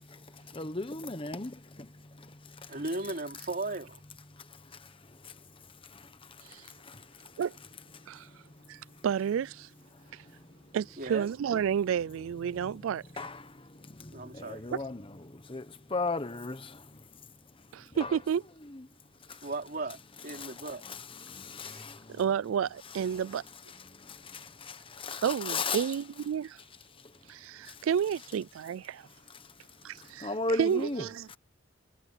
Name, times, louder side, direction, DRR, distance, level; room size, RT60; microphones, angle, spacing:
voice 1, 0.2-2.8 4.3-7.4 7.9-9.1 9.9-10.8 12.2-12.9 13.2-18.2 18.6-18.9 19.2-19.5 20.3-22.2 22.9-23.4 23.7-25.9 26.9-27.3 27.6-27.9 29.0-31.4, left 3 dB, 25° left, 1.2 m, -39 dB
voice 2, 2.7-4.0 11.0-11.3 14.1-14.6 19.4-20.8 21.6-21.8, right 2 dB, 45° right, 3.1 m, -36 dB
voice 3, 8.7-9.7 10.1-10.2 10.7-13.0 14.7-14.8 17.7-18.4 22.1-23.4 25.2-26.6 27.3-29.1 29.8-30.3 30.6-31.4, right 8 dB, 80° right, 0.3 m, -31 dB
head